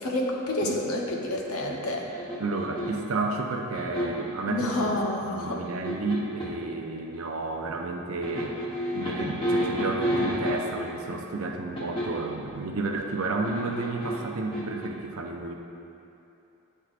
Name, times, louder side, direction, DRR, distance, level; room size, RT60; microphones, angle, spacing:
voice 1, 0.0-2.0 4.5-5.6, left 1 dB, 80° left, -1 dB, 0.8 m, -29 dB
sound 1, 2.1-3.1 3.7-4.4 5.4-6.6 8.2-10.9 11.8-12.3 13.4-14.9, equal, 25° left, 1.1 m, -30 dB
voice 2, 2.4-5.0 5.3-8.5 8.9-15.6, right 3 dB, 75° right, 2 dB, 0.6 m, -31 dB
9.7 x 4.5 x 2.5 m, 2.9 s
head